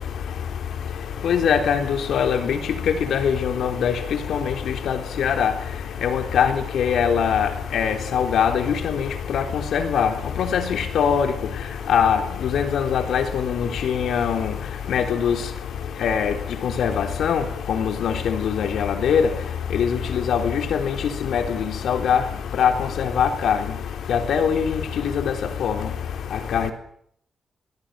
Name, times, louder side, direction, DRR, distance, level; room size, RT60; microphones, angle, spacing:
voice 1, 1.2-2.6 3.1-3.9 4.3-4.4 4.9-5.5 6.0-9.0 9.3-9.4 9.7-10.1 10.5-11.3 11.9-12.2 12.5-14.5 14.9-15.4 16.0-16.3 16.6-17.4 17.7-19.3 19.7-21.0 21.3-21.6 21.8-22.2 22.6-22.7 23.0-23.6 24.1-24.8 25.3-25.4 25.6-25.7 26.5-26.7, left 7 dB, 80° left, 7 dB, 3.5 m, -21 dB
26.5 x 20.5 x 7.6 m, 0.68 s
wide cardioid pair, 145°, 0 cm